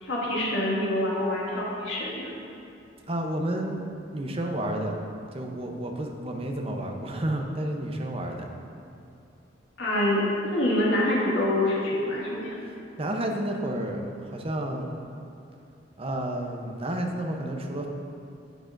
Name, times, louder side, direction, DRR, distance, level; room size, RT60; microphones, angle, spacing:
voice 1, 0.0-2.3 9.8-12.6, left 1 dB, 80° left, -6 dB, 2.0 m, -26 dB
voice 2, 3.1-3.9 4.1-5.0 5.3-8.5 13.0-15.0 16.0-17.9, right 1 dB, 30° right, 2 dB, 0.7 m, -31 dB
9.9 x 8.6 x 2.6 m, 2.6 s
head